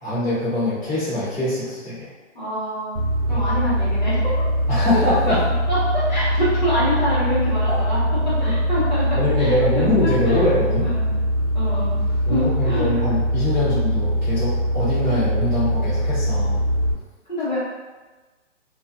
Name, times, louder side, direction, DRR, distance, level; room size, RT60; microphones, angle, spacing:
voice 1, 0.0-2.1 3.3-3.4 4.7-5.4 7.7-7.8 8.4-8.5 9.1-10.9 12.3-16.6, left 1 dB, 15° left, -21 dB, 0.7 m, -23 dB
voice 2, 2.3-3.0 3.3-4.3 5.3-5.4 5.7-10.4 10.8-11.2 11.5-12.9 13.6-13.7 17.3-17.6, equal, 35° left, -11 dB, 1.0 m, -26 dB
sound 1, 3.0-16.9, equal, 85° right, 0.6 m, -22 dB
2.4 x 2.3 x 2.4 m, 1.2 s
hypercardioid pair, 180°, 38 cm